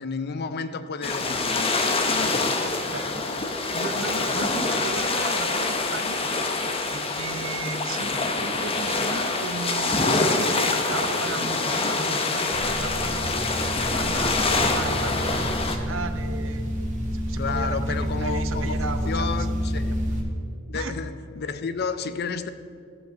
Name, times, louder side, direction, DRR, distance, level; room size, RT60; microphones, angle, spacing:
voice 1, 0.0-2.4 17.4-20.0 20.7-22.5, left 5 dB, 55° left, 12 dB, 0.5 m, -32 dB
sound 1, 1.0-15.8, left 3 dB, 30° left, 0.8 m, -25 dB
voice 2, 2.9-6.3 6.9-16.8 17.1-19.3 20.7-20.9, right 3 dB, 70° right, 9 dB, 0.8 m, -35 dB
sound 2, 12.5-20.2, equal, 40° right, 1.6 m, -29 dB
14.0 x 5.4 x 6.9 m, 2.5 s
head